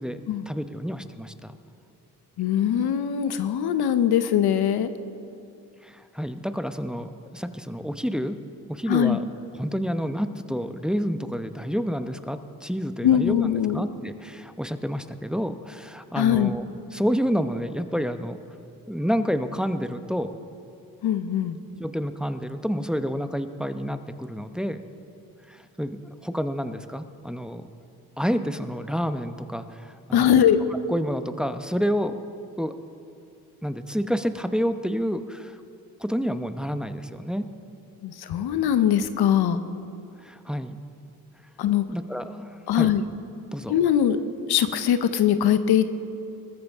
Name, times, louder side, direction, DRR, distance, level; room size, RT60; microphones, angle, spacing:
voice 1, 0.5-1.6 5.8-8.4 8.7-9.2 9.6-16.7 16.9-18.4 18.9-20.4 21.8-24.8 25.5-27.7 28.2-30.4 30.9-32.1 32.6-32.7 33.6-35.6 36.0-37.4 40.2-40.8 41.9-43.0 43.5-43.7, equal, ahead, 9 dB, 0.8 m, -29 dB
voice 2, 2.4-4.9 8.9-9.2 13.0-13.8 16.1-16.5 21.0-21.6 30.1-30.6 38.0-39.6 41.6-41.8 42.7-43.0 43.7-44.2 44.5-46.0, left 9 dB, 80° left, 11 dB, 0.8 m, -21 dB
20.5 x 14.0 x 3.6 m, 2.5 s
supercardioid pair, 55°, 38 cm